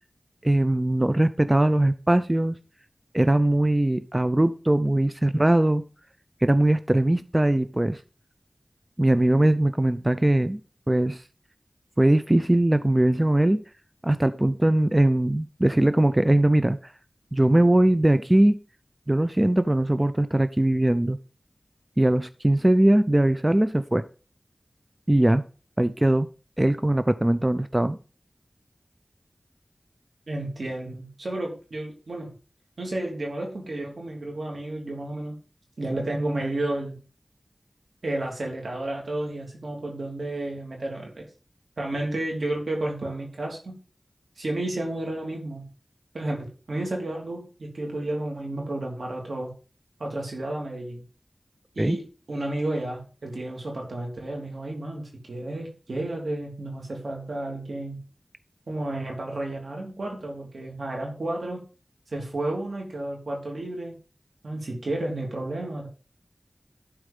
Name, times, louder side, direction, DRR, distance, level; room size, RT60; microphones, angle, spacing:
voice 1, 0.4-2.6 3.1-5.8 6.4-8.0 9.0-10.6 10.9-11.2 12.0-13.6 14.0-16.9 17.3-18.6 19.1-21.2 22.0-24.0 25.1-25.4 25.8-26.3 26.6-28.0 51.8-52.0, right 1 dB, 25° right, 12 dB, 0.6 m, -21 dB
voice 2, 30.3-32.3 32.8-35.3 35.8-37.0 38.0-41.3 41.8-43.7 44.4-45.6 46.1-49.5 50.0-51.0 51.7-58.0 58.7-61.6 62.1-63.9 64.4-65.9, right 1 dB, 85° right, 0 dB, 3.2 m, -31 dB
11.5 x 4.8 x 5.4 m, 0.36 s
wide cardioid pair, 45°, 0 cm